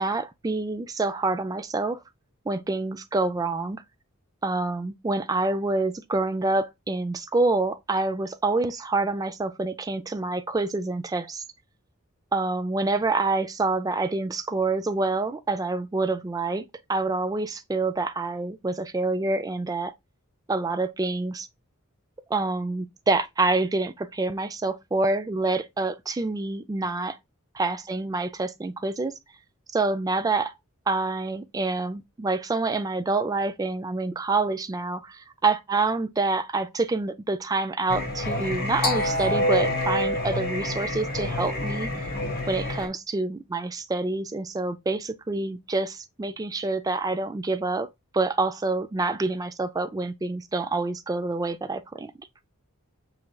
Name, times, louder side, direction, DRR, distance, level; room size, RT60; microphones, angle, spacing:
voice 1, 0.0-2.0 2.5-3.8 4.4-11.4 12.3-16.6 16.9-19.9 20.5-21.5 22.3-27.2 27.6-29.1 29.7-30.5 30.9-35.1 35.4-41.9 42.5-47.9 48.1-52.1, right 3 dB, 15° right, 0.3 m, -27 dB
Singing, 37.9-42.9, left 1 dB, 45° left, 1.4 m, -27 dB
5.9 x 3.2 x 2.2 m
head